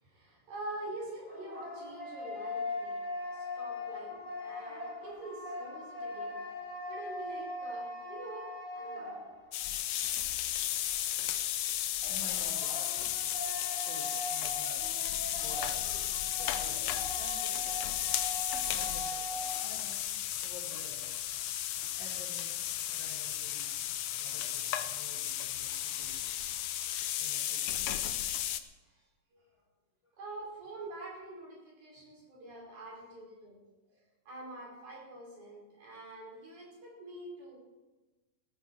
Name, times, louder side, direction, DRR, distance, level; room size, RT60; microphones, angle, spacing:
voice 1, 0.0-3.0 3.3-6.4 6.9-9.2 21.8-22.0 28.8-29.0 29.3-29.4 30.2-33.6 33.9-34.0 34.3-37.6, right 2 dB, 60° right, -3 dB, 6.4 m, -46 dB
sound 1, 1.0-9.7 12.0-19.8, left 2 dB, 5° left, 4.7 m, -41 dB
sound 2, 9.5-28.6, left 12 dB, 85° left, 1.5 m, -34 dB
voice 2, 12.1-13.1 13.9-15.0 15.3-15.8 16.4-18.2 18.7-20.0 20.4-21.2 22.0-23.7 24.2-26.3 27.2-27.9 30.0-30.1, left 2 dB, 35° left, -4 dB, 2.6 m, -51 dB
17.0 x 13.5 x 4.6 m, 1.2 s
omnidirectional pair, 3.9 m